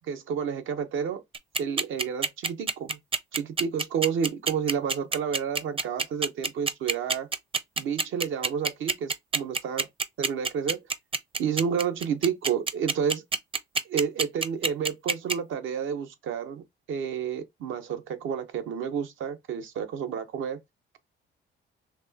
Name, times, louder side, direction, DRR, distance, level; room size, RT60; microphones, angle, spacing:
voice 1, 0.1-1.2 1.6-3.0 3.3-7.3 7.8-9.8 10.2-10.8 11.4-13.2 13.8-16.6 16.9-20.6, right 7 dB, 80° right, 0.9 m, -30 dB
sound 1, 1.3-15.3, right 4 dB, 25° right, 0.6 m, -26 dB
4.4 x 3.0 x 2.7 m
cardioid pair, 90°, 20 cm